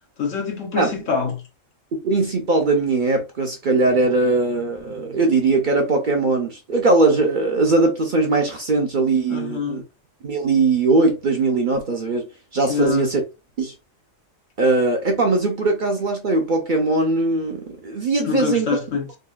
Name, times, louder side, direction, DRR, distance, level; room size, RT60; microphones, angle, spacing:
voice 1, 0.2-1.4 9.3-9.8 12.7-13.1 18.2-19.1, left 5 dB, 70° left, 1.2 m, -25 dB
voice 2, 1.9-9.8 10.2-12.2 12.5-13.2 13.6-13.7 14.6-18.7, right 3 dB, 50° right, 0.6 m, -20 dB
3.8 x 2.3 x 2.3 m
omnidirectional pair, 1.4 m